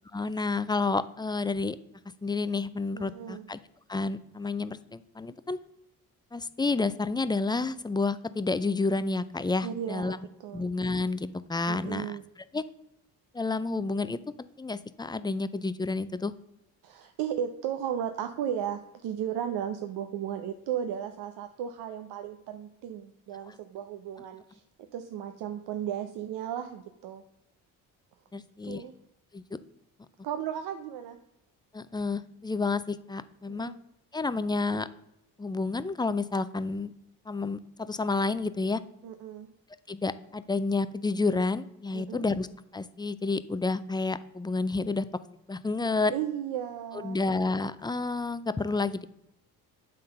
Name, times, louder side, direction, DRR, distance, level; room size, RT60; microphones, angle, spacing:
voice 1, 0.1-1.8 2.2-3.6 3.9-5.6 6.3-10.2 10.5-12.2 12.5-12.6 13.3-16.3 23.4-23.5 28.3-28.8 29.3-29.6 31.7-33.7 34.1-34.9 35.4-36.9 37.3-38.8 39.9-42.5 42.7-45.1 45.5-46.1 47.0-49.1, left 3 dB, 10° left, 14 dB, 0.4 m, -30 dB
voice 2, 2.9-3.4 9.6-10.6 11.7-12.2 16.8-24.6 24.9-27.2 28.3-28.9 30.2-31.2 33.5-33.8 39.0-39.5 41.9-42.3 46.1-47.2, right 9 dB, 75° right, 7 dB, 0.7 m, -35 dB
9.0 x 3.9 x 5.4 m, 0.85 s
supercardioid pair, 65°, 39 cm